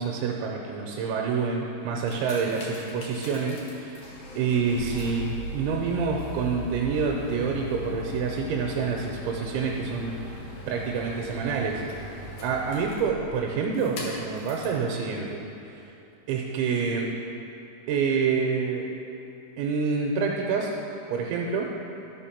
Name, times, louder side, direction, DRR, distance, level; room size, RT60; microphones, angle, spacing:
voice 1, 0.0-4.0 4.4-10.4 10.7-11.8 12.4-15.4 16.3-17.1 17.9-18.9 19.6-20.7 21.1-21.7, right 5 dB, 80° right, -1 dB, 3.0 m, -27 dB
sound 1, 1.8-14.8 15.6-15.7, left 1 dB, 75° left, 1.7 m, -39 dB
12.5 x 5.2 x 5.8 m, 2.8 s
omnidirectional pair, 5.4 m